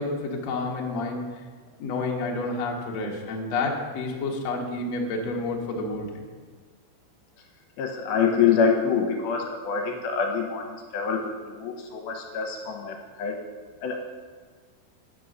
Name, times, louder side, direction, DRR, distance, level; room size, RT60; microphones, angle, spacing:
voice 1, 0.0-1.4 1.8-6.2, left 3 dB, 65° left, -1 dB, 1.8 m, -29 dB
voice 2, 7.8-13.4 13.8-14.0, left 6 dB, 80° left, 2 dB, 2.6 m, -26 dB
9.0 x 5.4 x 6.2 m, 1.5 s
omnidirectional pair, 4.5 m